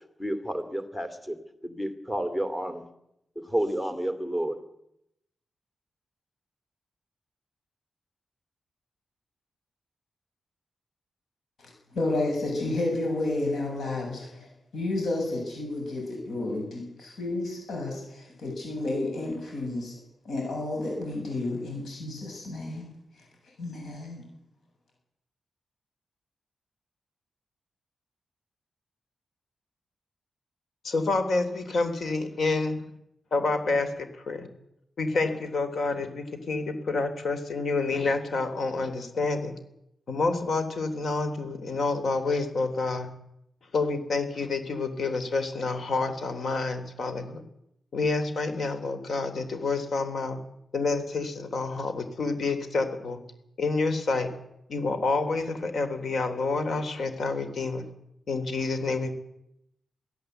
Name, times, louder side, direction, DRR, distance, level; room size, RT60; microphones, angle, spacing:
voice 1, 0.2-1.4 1.6-2.9 3.4-4.6, right 1 dB, 10° left, 9 dB, 2.5 m, -30 dB
voice 2, 11.6-19.9 20.2-22.9 23.2-23.3 23.6-24.2, left 2 dB, 75° left, 0 dB, 7.6 m, -31 dB
voice 3, 30.8-32.9 33.3-34.5 35.0-39.5 40.1-43.1 43.7-47.4 47.9-50.4 50.7-53.2 53.6-54.3 54.7-57.9 58.3-59.1, left 3 dB, 60° left, 9 dB, 3.4 m, -28 dB
24.0 x 16.0 x 8.0 m, 0.81 s
wide cardioid pair, 145°, 0 cm